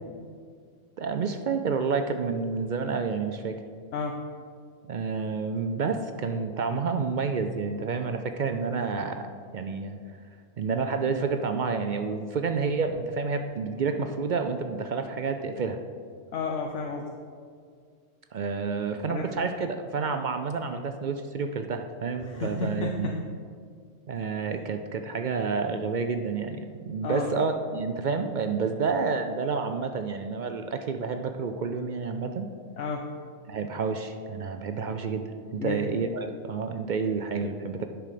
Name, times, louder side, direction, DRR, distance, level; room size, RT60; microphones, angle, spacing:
voice 1, 1.0-3.6 4.9-9.3 9.5-10.0 10.6-15.8 18.3-23.1 24.1-32.5 33.5-37.9, right 5 dB, 70° right, 7 dB, 0.4 m, -29 dB
voice 2, 16.3-17.1 19.1-19.2 22.2-23.2 27.0-27.3 32.8-33.1 35.6-35.9, left 4 dB, 70° left, 2 dB, 1.0 m, -31 dB
10.5 x 6.1 x 5.0 m, 2.1 s
omnidirectional pair, 1.4 m